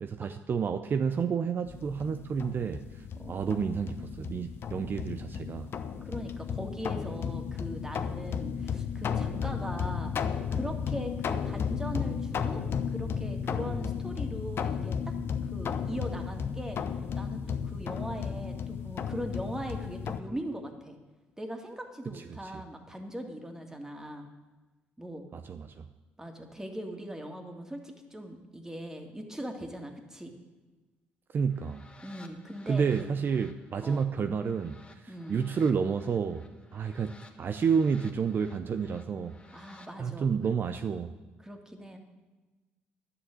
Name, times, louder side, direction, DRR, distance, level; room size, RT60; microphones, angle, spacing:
voice 1, 0.0-5.7 22.1-22.5 25.3-25.9 31.3-31.8 32.7-36.4 36.7-39.3 40.0-41.1, right 6 dB, 50° right, 9 dB, 0.6 m, -30 dB
sound 1, 1.7-20.2, left 7 dB, 55° left, 0.9 m, -34 dB
voice 2, 3.2-3.6 6.0-12.6 12.9-15.1 15.4-16.8 17.1-21.0 21.4-24.3 25.0-25.2 26.2-30.3 32.0-33.1 33.8-34.1 35.1-35.5 39.5-40.3 41.4-42.0, right 1 dB, 10° right, 4 dB, 2.3 m, -40 dB
sound 2, 31.4-39.9, left 3 dB, 25° left, 1.6 m, -57 dB
10.5 x 7.0 x 8.8 m, 1.2 s
supercardioid pair, 60°, 5 cm